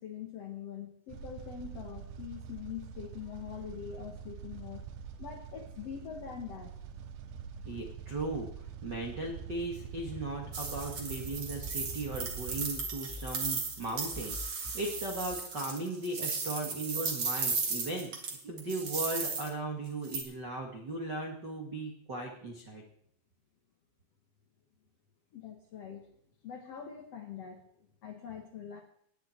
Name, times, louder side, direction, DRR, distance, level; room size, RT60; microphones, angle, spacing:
voice 1, 0.0-4.8 5.2-6.7 25.3-26.1 26.4-27.6 28.0-28.8, left 8 dB, 80° left, 3 dB, 1.4 m, -43 dB
sound 1, 1.1-12.7, right 7 dB, 85° right, 3.3 m, -45 dB
voice 2, 7.6-22.8, right 2 dB, 65° right, 1 dB, 1.0 m, -37 dB
sound 2, 10.5-19.5 20.0-20.2, right 4 dB, 40° right, 2.4 m, -36 dB
sound 3, 11.5-15.3, left 2 dB, 5° left, 2.2 m, -49 dB
19.0 x 9.4 x 4.5 m, 0.69 s
omnidirectional pair, 5.2 m